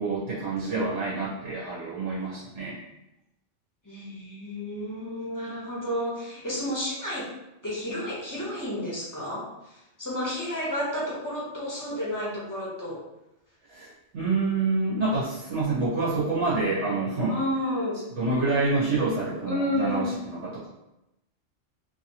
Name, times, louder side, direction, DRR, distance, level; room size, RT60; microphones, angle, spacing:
voice 1, 0.0-2.8 13.7-17.4 18.1-20.7, right 3 dB, 80° right, -7 dB, 1.3 m, -27 dB
voice 2, 3.8-7.3 7.6-13.0 17.3-18.0 19.4-20.1, left 1 dB, 20° left, -6 dB, 0.7 m, -31 dB
2.8 x 2.7 x 2.8 m, 0.92 s
omnidirectional pair, 1.2 m